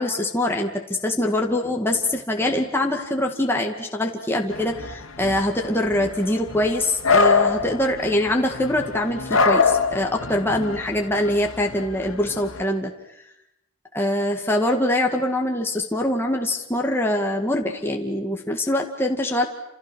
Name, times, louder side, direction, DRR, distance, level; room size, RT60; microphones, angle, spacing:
voice 1, 0.0-12.9 13.9-19.5, left 1 dB, 10° left, 1 dB, 2.1 m, -23 dB
sound 1, 4.5-12.6, left 4 dB, 80° left, 2.3 m, -25 dB
29.5 x 28.0 x 6.5 m, 0.83 s
head